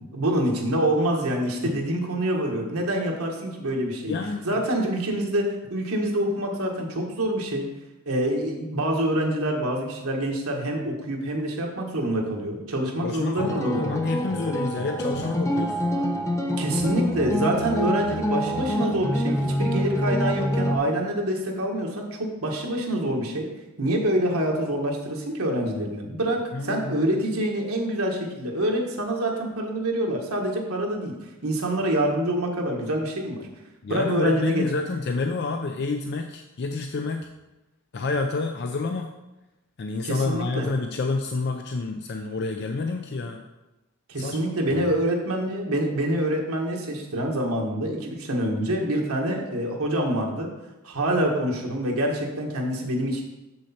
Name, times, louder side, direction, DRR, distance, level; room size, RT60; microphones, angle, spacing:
voice 1, 0.0-4.2 4.4-7.7 8.0-13.9 15.1-15.2 16.6-23.5 23.8-31.1 31.4-33.5 33.9-34.6 40.0-40.7 44.1-50.5 50.8-53.2, right 1 dB, 85° right, 0 dB, 1.4 m, -26 dB
voice 2, 4.1-4.7 13.0-15.8 26.5-27.2 33.8-37.3 37.9-39.1 39.8-43.4 44.2-44.4 44.7-44.9, left 3 dB, 50° left, 5 dB, 0.4 m, -29 dB
sound 1, 13.4-20.8, equal, 15° left, 0.8 m, -26 dB
6.8 x 6.3 x 4.3 m, 1.0 s
head